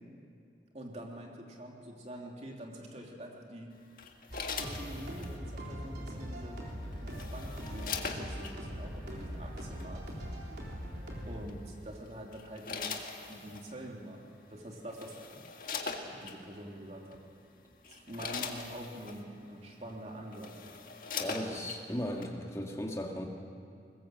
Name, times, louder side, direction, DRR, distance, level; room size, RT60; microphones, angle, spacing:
voice 1, 0.7-3.7 4.6-6.6 7.0-10.0 11.2-15.4 16.0-17.2 17.9-20.5 21.2-21.6, right 1 dB, 40° right, 0 dB, 3.0 m, -45 dB
sound 1, 4.0-5.4 6.7-8.5 9.6-9.8 11.5-11.8 12.3-13.7 14.5-14.6 14.9-16.4 17.1-17.3 17.7-19.2 19.9-20.0 20.3-21.8 22.2-22.3, left 5 dB, 50° left, 1.8 m, -40 dB
sound 2, 4.3-11.4, equal, 70° right, 3.7 m, -41 dB
voice 2, 21.2-23.3, equal, 15° left, 1 dB, 2.1 m, -36 dB
21.5 x 20.0 x 7.8 m, 2.4 s
head